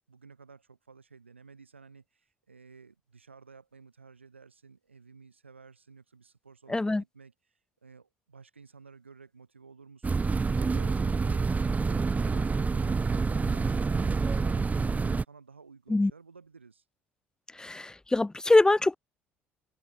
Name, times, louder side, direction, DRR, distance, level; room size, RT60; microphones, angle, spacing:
voice 1, 0.1-11.5 11.8-16.8, right 5 dB, 85° right, 5.1 m, -54 dB
voice 2, 6.7-7.0 15.9-16.1 17.6-19.0, left 2 dB, 10° left, 0.7 m, -23 dB
sound 1, 10.0-15.2, right 4 dB, 25° right, 1.9 m, -27 dB
open air
figure-of-eight pair, 55°, 6 cm